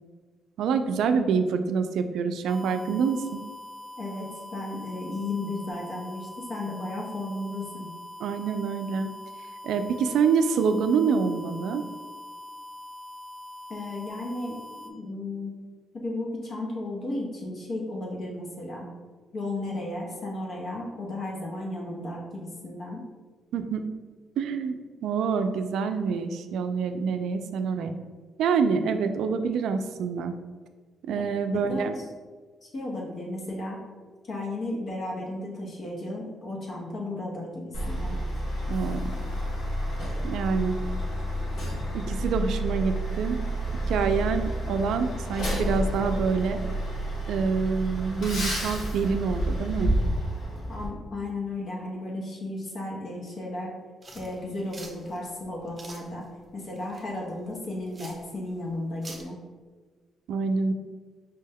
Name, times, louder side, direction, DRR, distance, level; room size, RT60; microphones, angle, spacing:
voice 1, 0.6-3.4 8.2-9.1 9.6-11.8 23.5-23.9 24.4-27.9 28.4-30.4 31.1-31.9 38.7-39.0 40.2-40.8 41.9-43.4 43.9-46.6 47.3-49.9 60.3-60.7, right 5 dB, 85° right, 8 dB, 0.3 m, -26 dB
sound 1, 2.5-14.9, left 1 dB, 10° left, 0.4 m, -43 dB
voice 2, 4.0-7.9 13.7-15.6 16.0-18.9 19.3-23.0 31.1-31.2 31.5-31.9 32.6-33.8 34.2-38.2 50.7-53.7 54.1-56.2 56.5-59.4, left 2 dB, 50° left, -2 dB, 0.8 m, -34 dB
Truck, 37.7-50.9, right 1 dB, 70° left, 1.3 m, -30 dB
sound 2, 54.0-59.2, right 2 dB, 20° right, 0.8 m, -47 dB
5.2 x 2.2 x 3.4 m, 1.4 s
cardioid pair, 140°, 0 cm